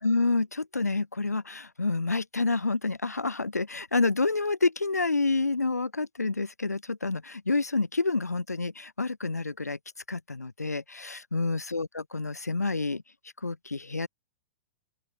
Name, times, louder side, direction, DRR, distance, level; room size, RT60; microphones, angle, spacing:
voice 1, 0.0-9.8 10.1-13.0 13.4-14.1, left 3 dB, 80° left, 0.9 m, -28 dB
open air
figure-of-eight pair, 105°, 9 cm